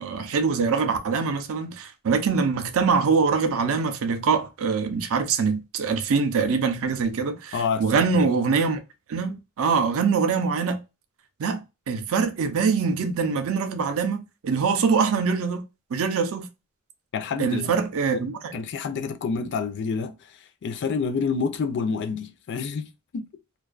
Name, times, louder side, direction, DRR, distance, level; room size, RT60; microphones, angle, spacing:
voice 1, 0.0-8.8 9.1-10.8 11.4-11.6 11.9-15.6 15.9-16.5 17.4-18.6, right 5 dB, 65° right, 0.5 m, -24 dB
voice 2, 7.5-7.9 8.1-8.3 17.1-17.8 18.1-18.2 18.5-23.3, left 5 dB, 50° left, 0.4 m, -28 dB
2.4 x 2.2 x 2.3 m
head